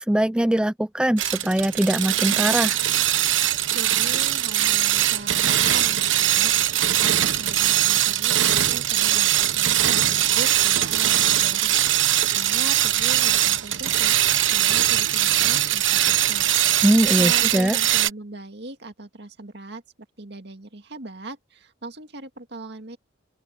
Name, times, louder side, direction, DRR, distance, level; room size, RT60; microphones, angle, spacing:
voice 1, 0.0-2.8 16.8-17.8, right 1 dB, 5° right, 0.3 m, -21 dB
sound 1, 1.2-18.1, right 12 dB, 75° right, 1.1 m, -21 dB
voice 2, 3.7-16.5 17.2-19.8 20.2-23.0, right 2 dB, 60° right, 2.2 m, -39 dB
open air
head